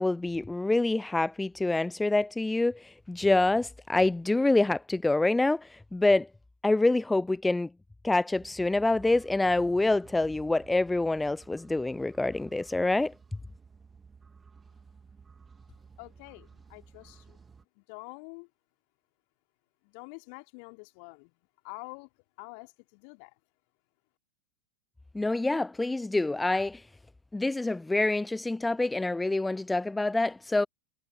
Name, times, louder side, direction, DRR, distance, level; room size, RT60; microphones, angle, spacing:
voice 1, 0.0-6.3 6.6-7.7 8.0-13.1 25.1-26.8 27.3-30.7, left 2 dB, 5° left, 0.3 m, -26 dB
sound 1, 8.3-17.6, right 5 dB, 15° right, 2.4 m, -55 dB
voice 2, 16.0-17.4 17.8-18.5 19.8-21.3 21.6-22.1 22.4-23.3, left 40 dB or more, 45° left, 2.8 m, -46 dB
figure-of-eight pair, 90°, 0 cm